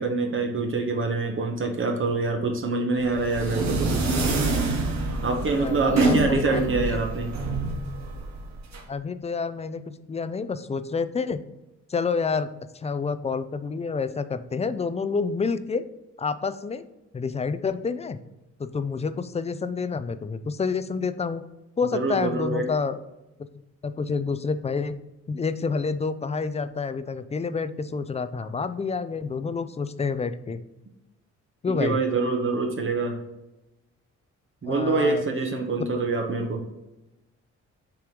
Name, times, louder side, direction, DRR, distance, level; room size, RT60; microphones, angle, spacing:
voice 1, 0.0-3.9 5.2-7.3 21.9-22.7 31.7-33.2 34.6-36.7, right 3 dB, 40° right, 3 dB, 1.0 m, -25 dB
sound 1, 3.0-8.8, right 3 dB, 65° right, 1.5 m, -26 dB
voice 2, 5.6-7.0 8.9-9.8 10.1-11.4 11.9-12.5 12.7-15.8 16.2-16.9 17.1-18.2 18.6-21.4 21.8-23.0 23.8-24.9 25.3-30.6 31.6-32.0 34.6-35.2 35.9-36.0, left 5 dB, 20° left, 12 dB, 0.4 m, -28 dB
6.9 x 3.1 x 5.1 m, 0.97 s
cardioid pair, 90°, 30 cm